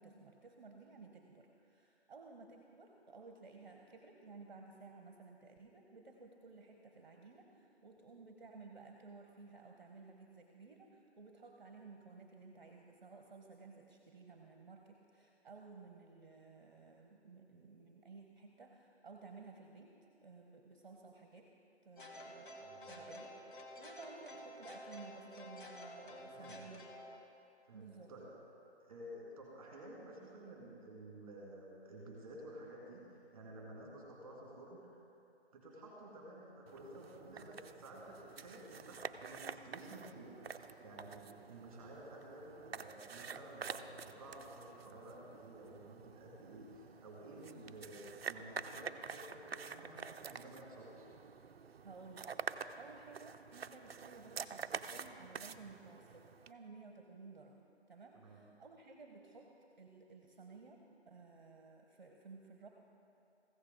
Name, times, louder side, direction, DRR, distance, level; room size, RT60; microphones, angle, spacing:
voice 1, 0.0-19.9 20.2-21.5 21.8-22.5 22.9-23.3 23.8-26.9 27.7-28.1 51.8-57.6 57.9-62.7, right 4 dB, 40° right, 2 dB, 0.8 m, -56 dB
sound 1, 22.0-27.2, left 1 dB, 45° left, 1.3 m, -51 dB
voice 2, 22.6-23.1 26.3-26.6 27.7-28.3 28.8-35.0 35.5-51.1 58.1-58.4, right 1 dB, 15° right, -3 dB, 1.9 m, -52 dB
sound 2, 36.7-56.5, right 6 dB, 60° right, 0.5 m, -48 dB
15.0 x 8.1 x 3.8 m, 2.7 s
figure-of-eight pair, 165°, 34 cm